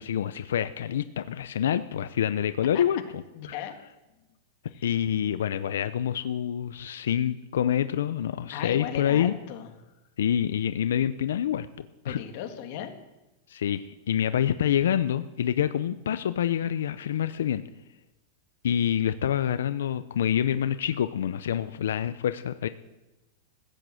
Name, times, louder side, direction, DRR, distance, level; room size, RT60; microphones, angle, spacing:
voice 1, 0.0-3.5 4.8-9.4 10.2-12.2 13.5-17.6 18.6-22.7, left 9 dB, 90° left, 12 dB, 0.6 m, -27 dB
voice 2, 3.3-3.8 4.7-4.8 8.5-9.7 12.1-12.9, left 10 dB, 45° left, 5 dB, 1.7 m, -36 dB
15.5 x 8.6 x 7.7 m, 1.0 s
supercardioid pair, 165°, 0 cm